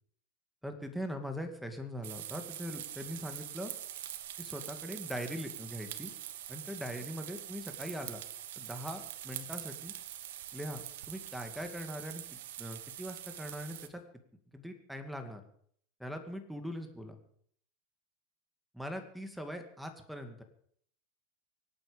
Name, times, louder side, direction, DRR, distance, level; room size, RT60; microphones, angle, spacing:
voice 1, 0.6-3.7 4.4-6.1 6.5-8.2 8.6-9.9 10.5-12.2 12.6-14.0 14.5-15.4 16.0-17.2 18.7-20.4, equal, ahead, 6 dB, 2.3 m, -41 dB
sound 1, 2.0-13.9, right 12 dB, 85° right, 1.4 m, -44 dB
24.5 x 9.1 x 5.3 m, 0.62 s
supercardioid pair, 130°, 0 cm